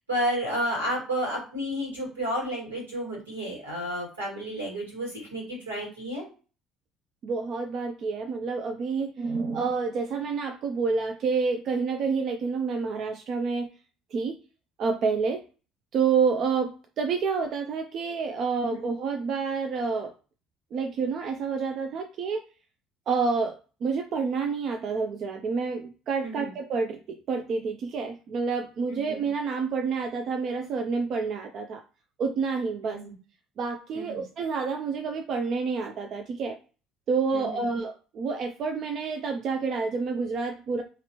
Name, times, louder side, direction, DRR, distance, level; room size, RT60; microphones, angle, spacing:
voice 1, 0.1-6.3 18.6-18.9 26.2-26.5 28.9-29.2 32.8-33.1 33.9-34.2 37.3-37.7, equal, 85° right, -4 dB, 2.2 m, -32 dB
voice 2, 7.2-13.7 14.1-14.4 14.8-15.4 15.9-20.1 20.7-22.4 23.1-27.0 27.3-31.8 32.2-33.0 33.6-36.6 37.1-40.8, right 5 dB, 50° right, 5 dB, 0.5 m, -28 dB
4.0 x 3.1 x 2.9 m, 0.35 s
figure-of-eight pair, 55°, 0 cm